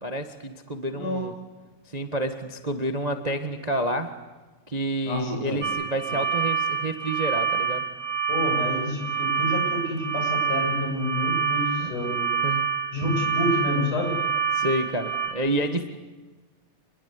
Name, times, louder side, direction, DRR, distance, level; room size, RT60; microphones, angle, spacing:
voice 1, 0.0-1.3 1.9-4.1 4.7-7.8 11.8-12.0 12.4-12.7 14.5-15.9, right 1 dB, 80° right, 7 dB, 0.3 m, -29 dB
voice 2, 5.1-5.7 8.3-12.3 12.9-14.2, left 1 dB, 65° left, 2 dB, 9.5 m, -28 dB
sound 1, 5.6-15.3, right 7 dB, 45° right, 3.5 m, -27 dB
29.0 x 22.0 x 8.4 m, 1.2 s
omnidirectional pair, 3.9 m